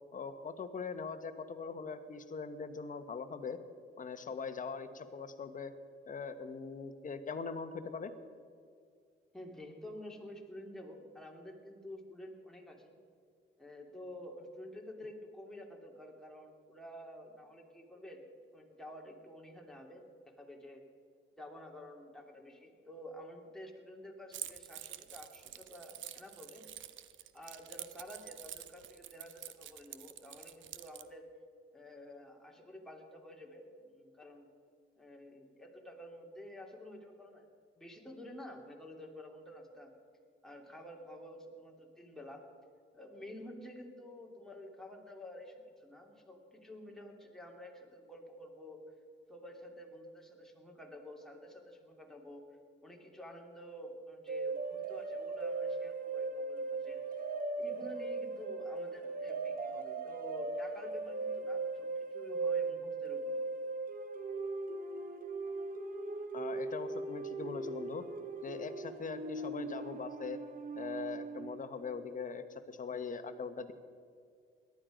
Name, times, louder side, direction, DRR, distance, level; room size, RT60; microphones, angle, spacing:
voice 1, 0.1-3.6 4.0-5.7 6.1-8.1 66.3-68.0 68.4-70.4 70.7-73.7, left 5 dB, 40° left, 9 dB, 1.2 m, -41 dB
voice 2, 9.3-12.9 13.6-18.3 18.5-20.8 21.4-26.7 27.3-31.3 31.7-34.5 35.0-37.5 37.8-39.9 40.4-42.4 42.9-48.8 49.3-52.5 52.8-57.0 57.5-63.4, left 1 dB, ahead, -1 dB, 2.8 m, -50 dB
Keys jangling, 24.3-31.1, right 11 dB, 75° right, 0.8 m, -48 dB
sound 1, 54.3-71.7, right 3 dB, 45° right, 1.1 m, -39 dB
18.0 x 12.0 x 5.1 m, 2.2 s
cardioid pair, 90°, 20 cm